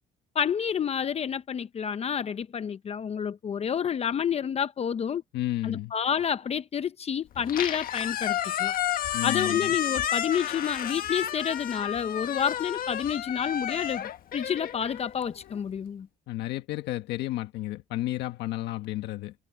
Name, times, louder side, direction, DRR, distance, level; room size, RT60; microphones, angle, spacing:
voice 1, 0.3-5.2 5.6-8.7 9.2-16.1, left 8 dB, 40° left, 0.7 m, -29 dB
voice 2, 5.3-5.9 9.1-9.7 16.3-19.3, left 16 dB, 85° left, 1.4 m, -32 dB
Squeak, 7.3-15.6, left 11 dB, 60° left, 1.5 m, -31 dB
cardioid pair, 110°, 17 cm